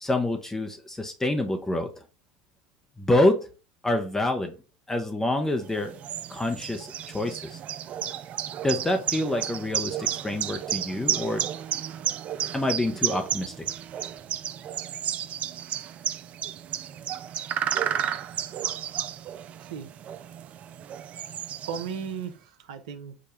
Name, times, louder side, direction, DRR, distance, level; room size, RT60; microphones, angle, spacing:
voice 1, 0.0-1.9 3.0-3.5 3.8-4.5 4.9-6.0 6.3-7.6 8.6-11.4 12.5-13.5, left 1 dB, 10° left, 4 dB, 0.6 m, -26 dB
sound 1, 5.6-22.2, right 10 dB, 40° right, 0.3 m, -32 dB
voice 2, 21.6-23.2, right 7 dB, 70° right, 7 dB, 0.7 m, -36 dB
4.8 x 2.2 x 4.1 m, 0.33 s
hypercardioid pair, 80°, 4 cm